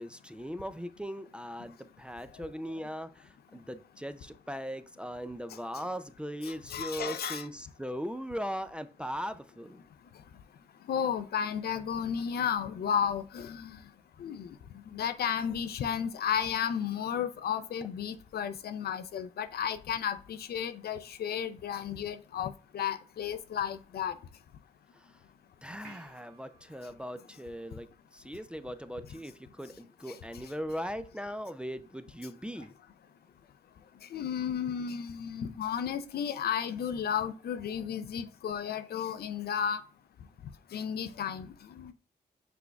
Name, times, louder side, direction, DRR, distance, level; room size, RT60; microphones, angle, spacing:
voice 1, 0.0-9.8 25.6-32.7, equal, 5° right, 0.3 m, -39 dB
voice 2, 6.4-7.5 10.9-13.8 14.2-14.6 14.9-24.2 30.1-30.2 34.1-39.8 40.7-41.9, left 8 dB, 70° left, 0.4 m, -33 dB
sound 1, 25.8-28.5 32.6-32.7, right 5 dB, 60° right, 1.1 m, -59 dB
5.9 x 3.3 x 2.3 m
cardioid pair, 55°, 17 cm